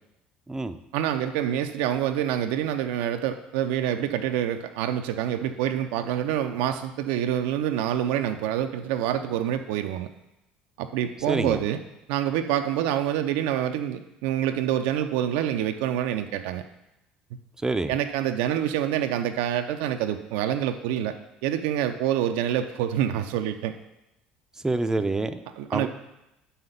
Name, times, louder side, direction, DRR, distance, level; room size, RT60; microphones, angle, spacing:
voice 1, 0.9-10.1 10.8-11.8 12.1-16.6 17.9-21.1 21.4-23.7 25.6-25.9, right 10 dB, 70° right, 7 dB, 0.5 m, -26 dB
voice 2, 11.3-11.6 17.6-17.9 24.6-25.4 25.7-25.9, right 2 dB, 15° right, 8 dB, 0.6 m, -26 dB
5.7 x 5.5 x 6.7 m, 0.90 s
hypercardioid pair, 65°, 4 cm